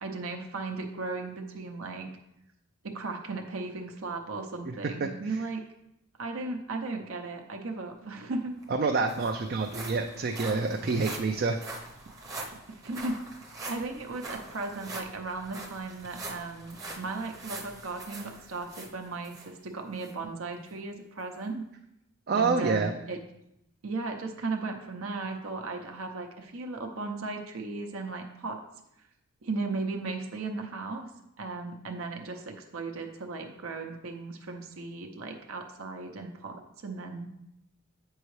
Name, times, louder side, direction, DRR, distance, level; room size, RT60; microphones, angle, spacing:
voice 1, 0.0-2.1 2.8-5.6 6.2-8.5 12.7-13.2 13.7-21.7 22.3-23.2 23.8-28.6 29.4-31.1 31.4-37.4, right 3 dB, 75° right, 4 dB, 0.7 m, -36 dB
sound 1, 8.3-8.4 8.6-19.5 20.0-20.1 20.7-20.8, right 2 dB, 15° right, 0.7 m, -43 dB
voice 2, 8.7-11.6 22.3-22.9, right 4 dB, 45° right, 3 dB, 0.4 m, -27 dB
8.0 x 5.5 x 3.2 m, 0.82 s
head